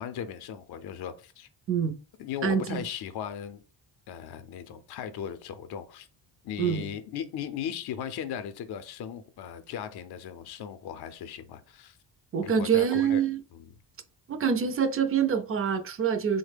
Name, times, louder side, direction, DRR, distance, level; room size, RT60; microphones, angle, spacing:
voice 1, 0.0-1.5 2.2-3.6 4.1-6.1 6.4-12.0 12.4-13.2 13.5-13.7, left 8 dB, 60° left, 0.5 m, -37 dB
voice 2, 2.4-2.8 6.6-6.9 12.3-13.4 14.3-16.4, right 7 dB, 30° right, 0.4 m, -25 dB
3.5 x 2.1 x 3.3 m
cardioid pair, 125°, 45 cm